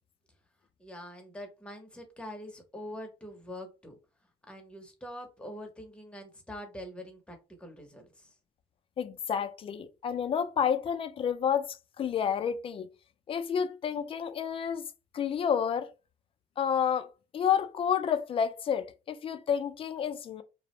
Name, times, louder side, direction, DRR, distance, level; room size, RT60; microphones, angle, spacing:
voice 1, 0.8-4.0 4.5-8.4, equal, 5° left, 0.7 m, -44 dB
voice 2, 9.0-12.9 13.3-14.8 15.1-15.9 16.6-20.4, left 8 dB, 35° left, 0.3 m, -30 dB
2.4 x 2.0 x 2.9 m
cardioid pair, 110°, 17 cm